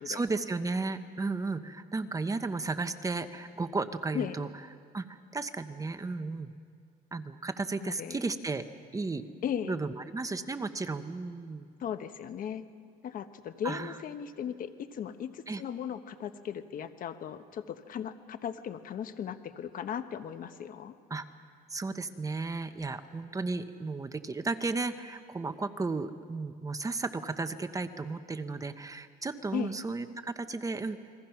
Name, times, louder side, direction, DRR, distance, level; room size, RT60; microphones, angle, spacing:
voice 1, 0.0-4.5 4.9-6.5 7.1-8.6 8.9-9.2 9.6-11.7 13.6-13.9 15.5-15.6 21.1-21.2 21.7-31.0, right 3 dB, 20° right, 9 dB, 1.0 m, -34 dB
voice 2, 7.8-8.2 9.4-9.7 11.8-12.6 13.0-20.9 29.5-29.7, left 8 dB, 55° left, 10 dB, 1.2 m, -37 dB
29.5 x 22.0 x 5.9 m, 2.1 s
cardioid pair, 110°, 17 cm